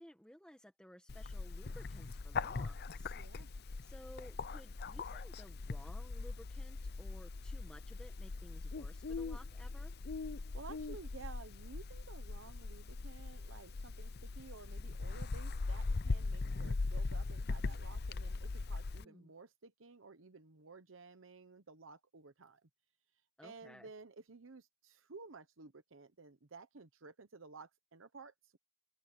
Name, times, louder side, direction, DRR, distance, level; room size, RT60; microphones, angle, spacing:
voice 1, 0.0-3.5 3.8-9.9 19.0-19.3 23.4-23.9, equal, 5° left, 1.6 m, -57 dB
Bird, 1.1-19.0, left 3 dB, 55° left, 0.6 m, -40 dB
voice 2, 3.2-3.5 10.5-22.6 23.4-28.6, right 4 dB, 75° right, 1.0 m, -54 dB
open air
head